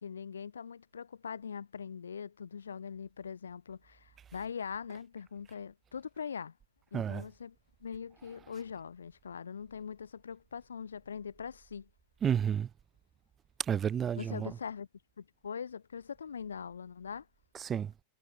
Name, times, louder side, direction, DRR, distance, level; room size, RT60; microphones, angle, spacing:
voice 1, 0.0-6.5 6.9-7.5 7.8-11.9 14.2-14.9 15.2-17.3, left 6 dB, 70° left, 0.7 m, -42 dB
voice 2, 6.9-7.3 8.5-8.6 12.2-12.7 13.6-14.6 17.5-17.9, right 8 dB, 25° right, 0.7 m, -31 dB
figure-of-eight pair, 90°, 0 cm